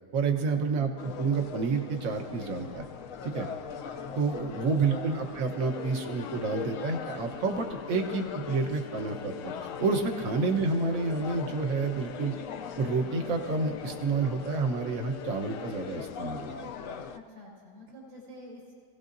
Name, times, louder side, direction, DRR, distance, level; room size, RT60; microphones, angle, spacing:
voice 1, 0.1-2.8 3.2-3.5 4.1-9.5 9.8-12.3 12.8-16.7, right 4 dB, 60° right, 4 dB, 1.4 m, -29 dB
sound 1, 1.0-17.2, left 6 dB, 65° left, 0.9 m, -41 dB
voice 2, 4.4-4.8 17.1-18.7, left 1 dB, 80° right, -4 dB, 4.8 m, -49 dB
Bowed string instrument, 5.5-16.5, left 12 dB, 80° left, 1.2 m, -45 dB
23.5 x 16.5 x 2.6 m, 2.1 s
omnidirectional pair, 1.7 m